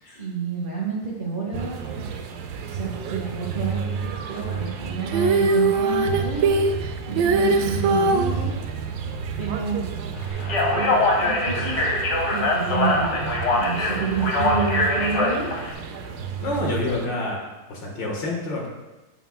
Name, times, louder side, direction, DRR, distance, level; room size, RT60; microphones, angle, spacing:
voice 1, 0.2-2.1 2.6-6.6 7.1-8.5 9.4-9.9 10.7-10.9 11.2-11.8 12.3-15.6, right 5 dB, 30° right, -4 dB, 1.2 m, -29 dB
sound 1, 1.5-17.1, right 6 dB, 70° right, 1.1 m, -31 dB
Female singing, 5.1-8.3 10.3-10.4, right 3 dB, 90° right, 1.4 m, -20 dB
Speech, 10.4-15.7, left 2 dB, 55° left, 1.7 m, -23 dB
voice 2, 16.4-17.4 17.7-18.7, left 2 dB, 75° left, -2 dB, 2.2 m, -28 dB
9.0 x 7.7 x 2.3 m, 1.1 s
omnidirectional pair, 2.1 m